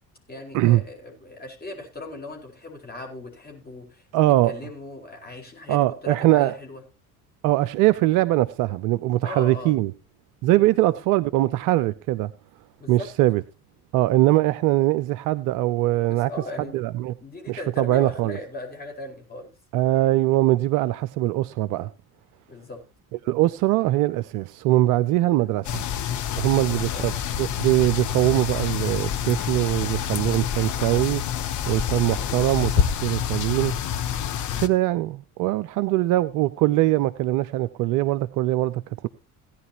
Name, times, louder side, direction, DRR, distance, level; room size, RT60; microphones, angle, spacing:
voice 1, 0.3-4.0 4.5-6.8 9.2-9.7 10.5-10.7 12.8-13.1 16.1-16.8 17.2-19.5 22.5-22.8 25.4-25.6 26.7-27.1 34.5-34.7, left 2 dB, 20° left, 4.8 m, -38 dB
voice 2, 4.1-4.5 5.7-6.5 7.4-9.9 10.4-12.3 12.9-13.4 13.9-16.3 16.7-17.1 17.5-18.4 19.7-21.9 23.2-25.9 26.4-31.2 31.7-33.7 34.6-39.1, right 16 dB, 45° right, 0.5 m, -22 dB
sound 1, 25.6-34.7, left 9 dB, 40° left, 1.0 m, -27 dB
17.0 x 10.0 x 2.9 m
figure-of-eight pair, 60°, 44 cm